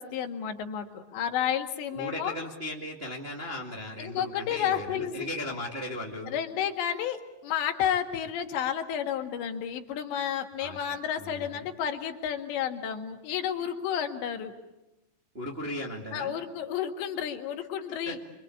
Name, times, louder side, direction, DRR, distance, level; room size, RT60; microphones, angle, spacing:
voice 1, 0.0-2.4 4.0-5.3 6.3-14.5 16.1-18.2, left 9 dB, 80° left, 4 dB, 4.0 m, -31 dB
voice 2, 1.9-6.4 10.6-11.7 15.3-16.4 18.1-18.2, left 1 dB, 20° right, -1 dB, 1.7 m, -37 dB
28.0 x 24.5 x 8.6 m, 0.98 s
omnidirectional pair, 5.0 m